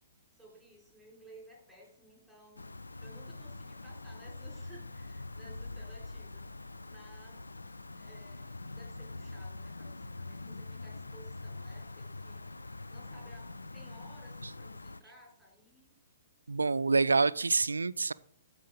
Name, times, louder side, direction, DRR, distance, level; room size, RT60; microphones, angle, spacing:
voice 1, 0.4-2.7 3.0-6.4 6.8-7.4 7.9-12.6 12.9-16.0, right 1 dB, ahead, 3.8 m, -57 dB
sound 1, 2.6-15.0, left 2 dB, 80° left, 0.4 m, -44 dB
voice 2, 16.5-18.1, right 4 dB, 80° right, 0.3 m, -27 dB
14.0 x 4.9 x 3.7 m
figure-of-eight pair, 120°, 0 cm